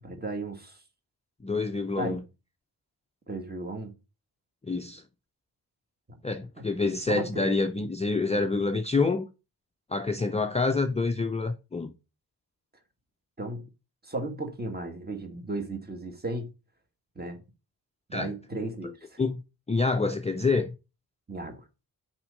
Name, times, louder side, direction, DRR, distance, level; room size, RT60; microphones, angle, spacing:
voice 1, 0.0-0.8 2.0-2.2 3.3-3.9 6.6-6.7 7.1-7.5 13.4-13.7 14.0-16.5 17.1-17.4 18.1-19.2 21.3-21.6, right 2 dB, 25° right, 1.6 m, -35 dB
voice 2, 1.4-2.2 4.6-5.0 6.2-9.3 9.9-11.9 18.1-18.3 19.2-19.4 19.7-20.8, left 3 dB, 15° left, 0.4 m, -27 dB
6.0 x 4.4 x 6.3 m
wide cardioid pair, 145°, 39 cm